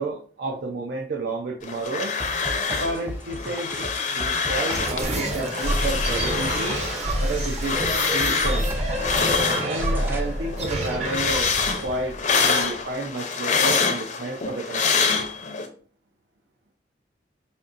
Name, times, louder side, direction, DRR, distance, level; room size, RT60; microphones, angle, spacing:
voice 1, 0.0-2.2 2.6-6.8 7.2-7.8 8.1-8.7 9.6-11.5 11.8-15.1, right 2 dB, 65° right, 1 dB, 0.5 m, -31 dB
sound 1, 1.6-3.0 3.3-5.0 5.4-10.1 10.5-15.7, left 5 dB, 45° left, 0.6 m, -26 dB
sound 2, 2.2-10.2, equal, 10° right, 0.4 m, -36 dB
sound 3, 4.7-12.9, right 1 dB, 40° right, 0.9 m, -27 dB
5.1 x 2.6 x 2.4 m, 0.43 s
head